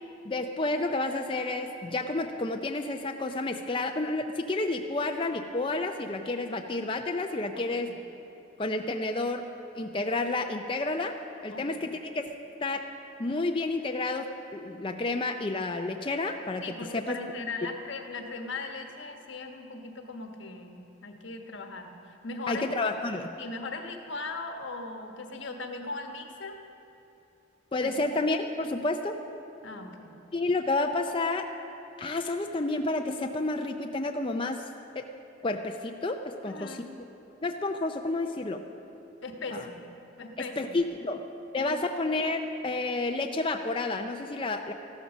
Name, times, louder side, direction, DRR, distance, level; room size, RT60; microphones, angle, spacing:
voice 1, 0.2-7.9 8.6-9.5 9.8-11.2 11.4-12.3 12.6-12.9 13.2-16.6 16.9-17.2 22.5-23.3 27.7-29.2 30.3-31.5 32.0-34.7 35.0-35.1 35.4-37.1 37.4-38.6 39.5-39.7 40.4-41.2 41.5-44.7, left 2 dB, 25° left, 4 dB, 0.5 m, -30 dB
voice 2, 16.6-22.0 22.2-22.7 23.4-26.6 27.8-27.9 29.6-30.2 36.4-36.9 39.2-39.8 40.2-40.8 41.6-41.8, left 3 dB, 80° left, 4 dB, 1.3 m, -39 dB
14.5 x 12.5 x 6.2 m, 2.9 s
head